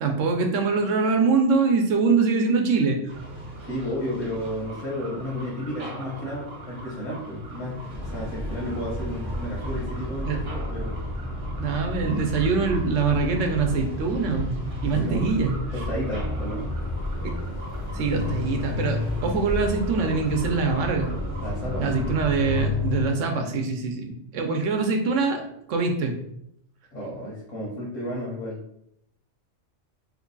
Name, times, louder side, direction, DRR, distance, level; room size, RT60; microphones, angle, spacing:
voice 1, 0.0-3.0 10.3-10.4 11.6-15.6 17.2-17.4 17.9-21.1 21.8-26.2, right 4 dB, 75° right, 4 dB, 1.0 m, -24 dB
sound 1, 3.1-22.7, right 1 dB, 50° right, 0.8 m, -40 dB
voice 2, 3.6-11.0 14.8-15.3 15.7-16.7 21.4-21.9 26.9-28.6, equal, 75° left, -4 dB, 1.3 m, -32 dB
sound 2, 7.9-23.1, left 1 dB, 30° left, 0.4 m, -31 dB
3.2 x 2.3 x 3.8 m, 0.74 s
omnidirectional pair, 1.3 m